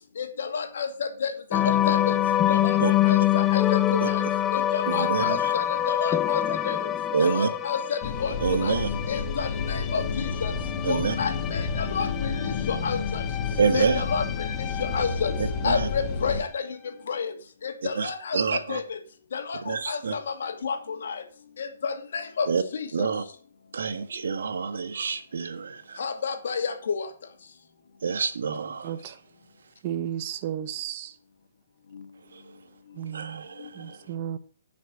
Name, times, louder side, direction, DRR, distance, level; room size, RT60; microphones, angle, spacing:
voice 1, 0.2-2.2 2.5-3.6 3.9-4.2 4.5-6.8 7.2-8.8 9.1-10.5 10.9-13.2 13.7-15.3 15.6-16.7 17.1-17.3 17.6-19.0 19.3-21.2 21.6-22.5 22.7-23.1 26.0-27.1, left 5 dB, 65° left, 2.3 m, -30 dB
sound 1, 1.5-16.0, left 13 dB, 20° left, 0.6 m, -27 dB
voice 2, 4.9-5.5 7.1-7.5 8.4-8.9 10.8-11.1 13.6-14.0 15.4-15.9 17.9-18.8 19.6-20.1 22.5-22.6 22.9-23.2 23.7-26.0 28.0-29.1 32.3-32.4 33.1-34.0, right 5 dB, 70° right, 1.5 m, -27 dB
sound 2, 8.0-16.4, left 5 dB, 40° left, 2.3 m, -30 dB
voice 3, 28.8-29.1 29.8-31.1 33.0-33.4 33.8-34.4, right 10 dB, 40° right, 1.2 m, -33 dB
11.0 x 6.1 x 6.3 m
hypercardioid pair, 130°, 0 cm